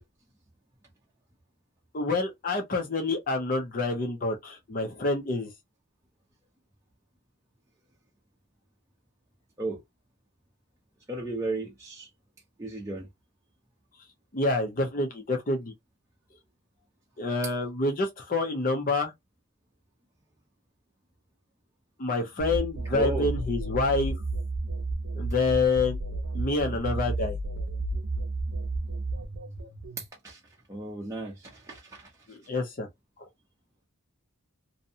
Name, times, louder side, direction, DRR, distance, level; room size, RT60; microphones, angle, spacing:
voice 1, 1.9-5.5 14.3-15.7 17.2-19.1 22.0-24.1 25.2-26.0 26.3-27.4 32.3-32.9, left 3 dB, 40° left, 0.6 m, -27 dB
voice 2, 11.1-12.1 12.6-13.1 22.9-23.3 30.2-30.4 30.7-32.1, right 2 dB, 15° right, 0.6 m, -34 dB
sound 1, 22.4-30.0, right 2 dB, 60° right, 0.7 m, -32 dB
2.7 x 2.2 x 2.6 m
head